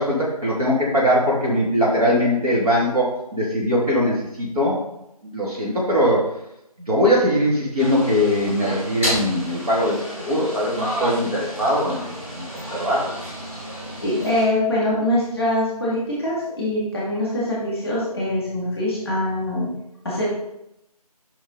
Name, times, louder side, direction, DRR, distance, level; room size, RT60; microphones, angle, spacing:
voice 1, 0.0-4.8 5.2-6.3 6.8-13.1, equal, 70° right, -4 dB, 2.9 m, -21 dB
sound 1, 7.8-14.5, equal, 20° right, 2.1 m, -31 dB
voice 2, 14.0-19.7 20.0-20.3, left 1 dB, ahead, -6 dB, 2.3 m, -23 dB
6.8 x 5.3 x 4.2 m, 0.83 s
figure-of-eight pair, 170°, 20 cm